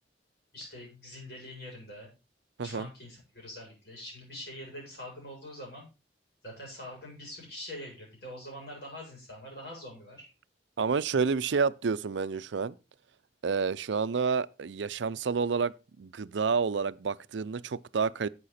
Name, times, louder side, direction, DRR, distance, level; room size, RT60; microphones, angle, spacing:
voice 1, 0.5-2.1 2.6-5.9 6.4-10.3, left 1 dB, 60° left, 7.5 m, -44 dB
voice 2, 10.8-12.8 13.4-18.3, right 5 dB, 85° right, 0.5 m, -29 dB
11.5 x 8.6 x 4.2 m
head